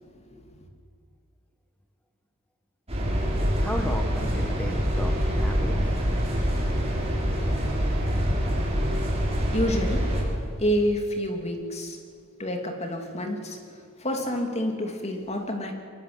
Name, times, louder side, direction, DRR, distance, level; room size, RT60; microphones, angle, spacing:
sound 1, 2.9-10.2, equal, 30° right, 6.2 m, -25 dB
voice 1, 3.6-5.8, equal, 5° left, 2 dB, 1.4 m, -34 dB
voice 2, 9.5-10.1 10.6-12.0 12.4-13.6 14.0-15.7, equal, 30° left, 4 dB, 2.8 m, -28 dB
23.0 x 21.0 x 8.0 m, 2.3 s
head